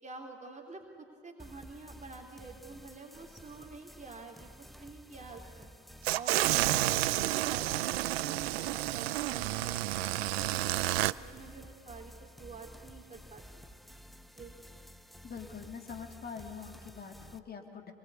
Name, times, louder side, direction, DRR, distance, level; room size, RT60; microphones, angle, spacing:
voice 1, 0.0-5.7 6.1-13.4 14.4-14.5, right 3 dB, 25° right, 1 dB, 3.6 m, -48 dB
sound 1, 1.4-17.4, equal, ahead, 1.0 m, -52 dB
sound 2, 6.0-11.1, right 17 dB, 70° right, 0.6 m, -30 dB
voice 2, 15.2-17.9, left 6 dB, 30° left, 4 dB, 3.1 m, -44 dB
27.0 x 22.5 x 8.5 m, 2.3 s
hypercardioid pair, 70°, 32 cm